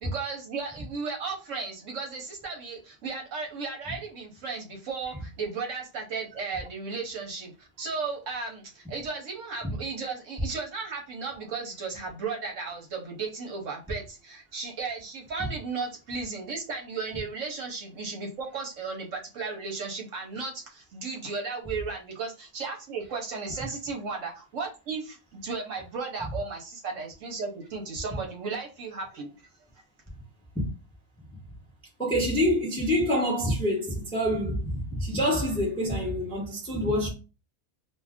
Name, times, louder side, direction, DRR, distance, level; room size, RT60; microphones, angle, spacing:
voice 1, 0.0-29.3, right 4 dB, 60° right, 0.9 m, -35 dB
voice 2, 32.0-34.6 34.9-37.1, equal, 5° left, 0.5 m, -26 dB
2.6 x 2.3 x 3.4 m
omnidirectional pair, 1.6 m